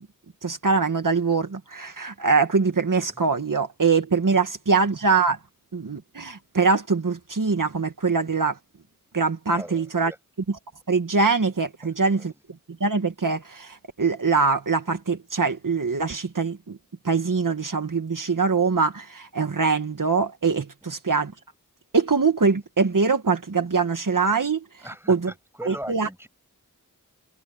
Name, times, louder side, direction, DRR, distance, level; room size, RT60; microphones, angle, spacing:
voice 1, 0.4-5.4 5.7-8.6 9.1-10.1 10.9-12.3 12.8-16.8 17.0-21.3 21.9-24.6 25.1-25.3 25.7-26.1, right 4 dB, 70° right, 1.9 m, -23 dB
voice 2, 9.5-10.2 11.8-12.3 20.8-20.9 24.8-26.3, equal, 5° right, 6.6 m, -40 dB
wide cardioid pair, 45°, 34 cm